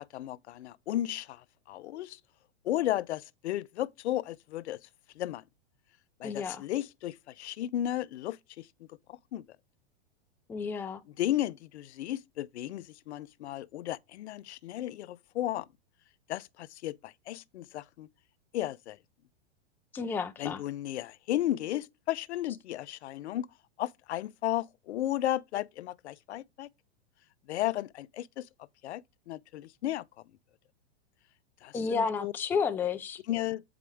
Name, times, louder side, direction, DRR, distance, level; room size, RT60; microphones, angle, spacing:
voice 1, 0.0-1.4 1.7-2.2 2.6-4.8 5.2-5.4 6.2-8.7 9.3-9.4 11.2-15.7 16.3-18.1 18.5-19.0 20.4-23.5 23.8-26.7 27.5-28.5 28.8-29.0 29.3-30.0 31.6-32.3 33.3-33.6, left 13 dB, 80° left, 0.6 m, -34 dB
voice 2, 6.2-6.6 10.5-11.0 19.9-20.6 31.7-33.2, left 5 dB, 5° left, 0.4 m, -31 dB
8.6 x 4.8 x 3.5 m
supercardioid pair, 145°, 33 cm